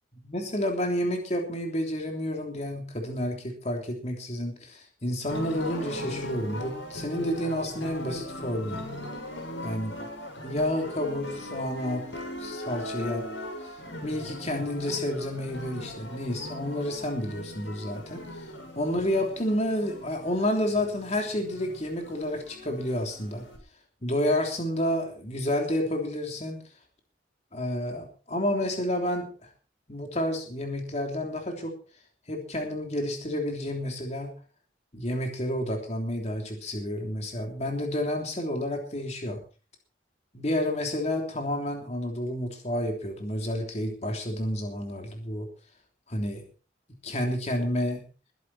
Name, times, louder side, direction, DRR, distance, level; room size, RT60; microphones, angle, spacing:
voice 1, 0.2-8.8 9.6-9.9 10.4-12.0 12.4-13.2 13.6-23.4 24.0-26.6 27.5-29.3 29.9-31.7 32.3-34.3 34.9-39.4 40.3-45.5 46.1-46.4 47.0-48.0, left 1 dB, 35° left, 2 dB, 3.3 m, -30 dB
sound 1, 5.2-23.6, left 1 dB, 75° left, 7.4 m, -39 dB
21.5 x 11.5 x 4.3 m, 0.35 s
head